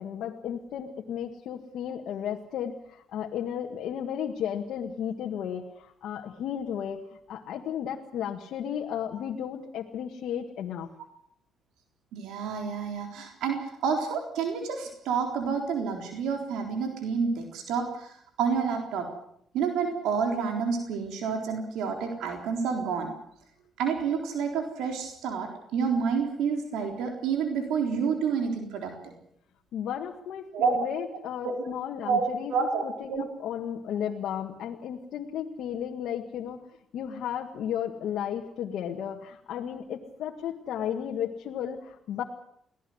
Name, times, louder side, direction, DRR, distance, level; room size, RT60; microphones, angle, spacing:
voice 1, 0.0-10.9 29.7-36.6 36.9-42.2, left 9 dB, 80° left, 1 dB, 1.8 m, -34 dB
voice 2, 12.1-19.1 19.5-23.1 23.8-29.1 30.5-30.8 31.4-31.6 32.1-32.2 32.5-33.2, right 6 dB, 90° right, 3 dB, 3.9 m, -29 dB
23.5 x 17.5 x 8.0 m, 0.69 s
cardioid pair, 90°, 0 cm